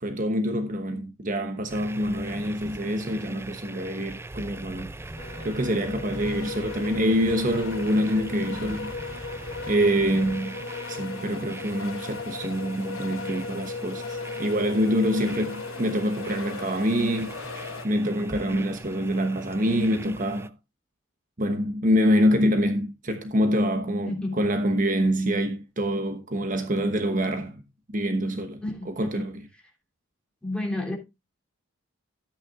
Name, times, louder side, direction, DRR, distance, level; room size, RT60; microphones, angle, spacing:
voice 1, 0.0-4.9 5.4-9.4 9.7-10.6 10.9-20.5 21.4-27.6 27.9-29.4, equal, 40° right, 1.1 m, -26 dB
sound 1, 1.7-20.5, right 2 dB, 10° right, 0.4 m, -41 dB
sound 2, 5.2-17.9, left 4 dB, 75° left, 0.9 m, -37 dB
voice 2, 24.1-24.5 28.6-29.3 30.4-31.0, left 1 dB, 5° left, 3.1 m, -31 dB
13.5 x 9.0 x 2.4 m
head